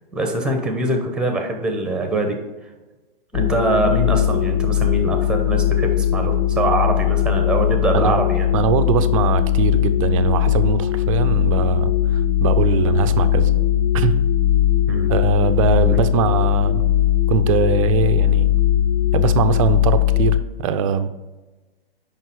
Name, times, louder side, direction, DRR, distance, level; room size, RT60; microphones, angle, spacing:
voice 1, 0.1-2.4 3.3-8.5 14.9-15.1, right 2 dB, 5° right, 4 dB, 0.9 m, -23 dB
sound 1, 3.3-20.4, left 11 dB, 40° left, 0.4 m, -19 dB
voice 2, 8.5-13.5 13.9-14.2 15.1-16.8 17.3-18.5 19.1-21.1, right 7 dB, 35° right, 10 dB, 0.5 m, -21 dB
6.6 x 5.4 x 4.6 m, 1.2 s
hypercardioid pair, 125°, 30 cm